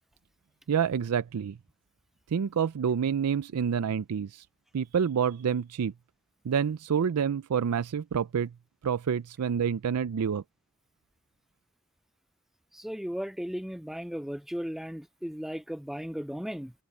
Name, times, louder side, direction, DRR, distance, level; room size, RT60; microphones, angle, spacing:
voice 1, 0.7-1.6 2.3-4.4 4.7-5.9 6.4-8.5 8.8-10.4, right 7 dB, 90° right, 0.4 m, -28 dB
voice 2, 12.7-16.7, equal, ahead, 0.3 m, -36 dB
head